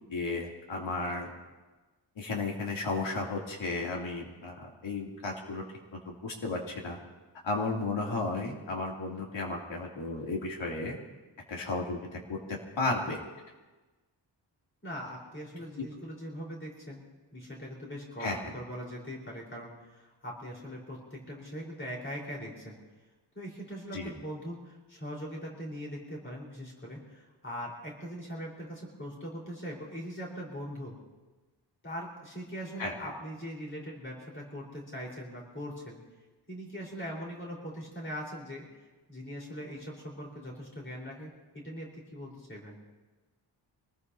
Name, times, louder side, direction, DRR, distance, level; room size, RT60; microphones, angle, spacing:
voice 1, 0.1-1.3 2.2-5.6 5.9-7.0 7.4-10.9 11.5-13.2 15.8-15.9 18.2-18.4 23.9-24.1 32.8-32.9, left 3 dB, 85° left, -1 dB, 3.1 m, -34 dB
voice 2, 14.8-17.0 17.3-22.7 23.3-30.9 31.8-36.0 36.5-38.7 39.1-41.3 41.5-42.8, equal, 25° left, -3 dB, 4.5 m, -41 dB
25.5 x 19.5 x 2.9 m, 1.2 s
wide cardioid pair, 170°, 44 cm